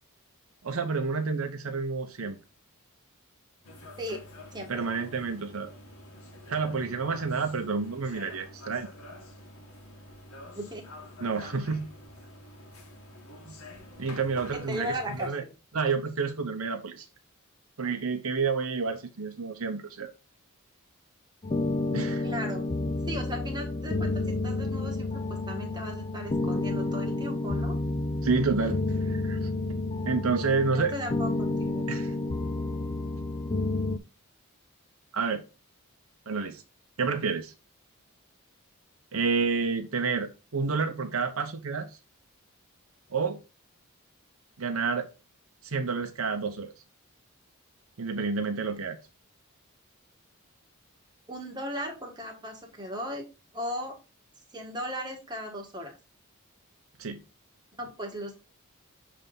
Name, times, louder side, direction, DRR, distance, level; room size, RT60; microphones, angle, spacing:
voice 1, 0.6-2.4 4.7-5.7 6.5-8.9 11.2-11.9 13.5-13.6 14.0-15.4 15.7-17.1 17.8-20.1 21.9-22.2 28.2-29.5 30.1-30.9 31.9-32.1 35.1-35.4 36.3-36.6 37.0-37.5 39.1-41.9 43.1-43.4 44.6-45.1 45.6-46.7 48.0-49.0 57.0-57.2, right 4 dB, 70° right, 0.8 m, -29 dB
sound 1, 3.6-15.3, left 1 dB, 90° left, 1.6 m, -47 dB
voice 2, 4.5-4.8 10.5-10.8 14.5-15.5 22.2-22.6 23.0-27.8 30.6-31.9 51.3-53.3 53.5-54.0 54.5-56.0 57.8-58.3, equal, 20° right, 1.6 m, -37 dB
sound 2, 21.4-34.0, left 2 dB, 25° left, 0.5 m, -30 dB
7.3 x 3.4 x 3.8 m
head